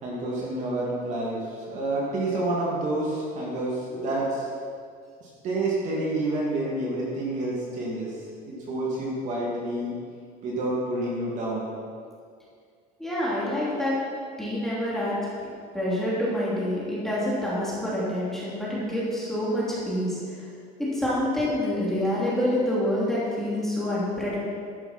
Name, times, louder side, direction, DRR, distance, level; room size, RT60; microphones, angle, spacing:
voice 1, 0.0-4.4 5.2-9.9 10.4-11.7, right 2 dB, 40° right, -4 dB, 2.8 m, -29 dB
voice 2, 13.0-13.9 14.4-15.2 15.7-20.4 20.8-24.4, left 1 dB, ahead, -8 dB, 3.1 m, -27 dB
12.0 x 10.5 x 4.5 m, 2.1 s
cardioid pair, 165°, 18 cm